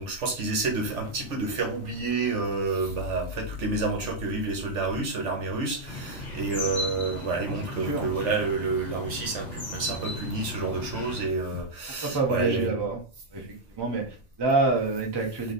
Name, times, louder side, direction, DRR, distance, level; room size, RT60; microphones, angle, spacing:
voice 1, 0.0-12.8, right 3 dB, 65° right, 1.3 m, -29 dB
sound 1, 0.8-11.7, left 3 dB, 70° left, 1.0 m, -44 dB
sound 2, 5.9-11.3, left 1 dB, 35° left, 1.0 m, -37 dB
voice 2, 7.5-8.1 12.0-13.0 13.3-15.5, right 3 dB, 20° right, 0.8 m, -27 dB
3.3 x 2.8 x 4.1 m
omnidirectional pair, 1.4 m